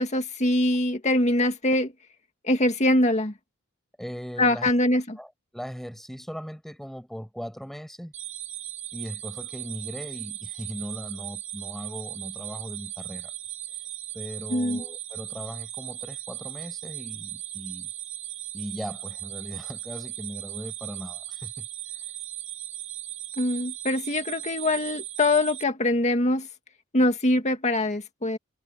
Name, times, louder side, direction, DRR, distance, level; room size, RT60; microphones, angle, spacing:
voice 1, 0.0-1.9 2.4-3.3 4.4-5.2 14.5-14.8 23.4-26.5 26.9-28.4, left 1 dB, 35° left, 2.1 m, -23 dB
voice 2, 4.0-4.9 5.2-8.1 8.9-13.3 13.7-13.8 14.1-17.9 18.5-21.7, equal, ahead, 5.6 m, -39 dB
sound 1, 8.1-25.6, right 13 dB, 40° right, 4.1 m, -38 dB
head